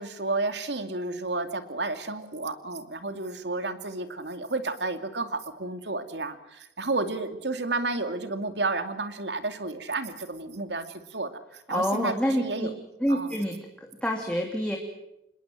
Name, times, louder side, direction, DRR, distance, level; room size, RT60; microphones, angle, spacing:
voice 1, 0.0-12.7 13.1-13.3, right 3 dB, 75° right, 8 dB, 2.6 m, -31 dB
voice 2, 11.7-12.7 13.0-14.8, equal, 5° left, 0 dB, 2.8 m, -27 dB
26.5 x 21.5 x 7.7 m, 0.86 s
head